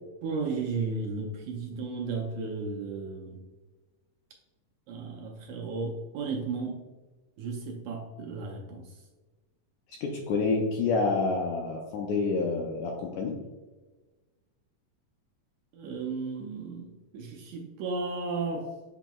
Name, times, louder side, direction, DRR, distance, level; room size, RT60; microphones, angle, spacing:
voice 1, 0.2-3.4 4.9-6.8 7.4-8.8 15.7-16.9 17.1-18.7, right 4 dB, 80° right, 1 dB, 1.8 m, -34 dB
voice 2, 10.0-13.4, left 4 dB, 80° left, 0 dB, 1.6 m, -28 dB
7.9 x 2.9 x 2.2 m, 1.2 s
omnidirectional pair, 3.7 m